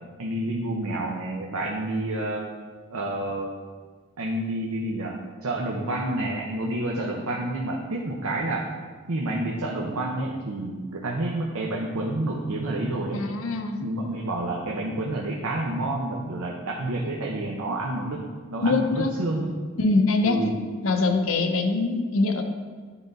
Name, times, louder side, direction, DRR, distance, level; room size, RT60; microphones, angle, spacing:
voice 1, 0.2-2.5 2.9-3.5 4.2-8.7 9.1-13.2 13.8-18.2 18.5-19.6 20.2-20.6, right 1 dB, 85° right, -2 dB, 0.8 m, -29 dB
voice 2, 13.1-13.9 18.6-19.1 19.8-20.4 20.8-22.4, left 3 dB, 75° left, 5 dB, 0.7 m, -23 dB
10.0 x 3.9 x 3.9 m, 1.5 s
head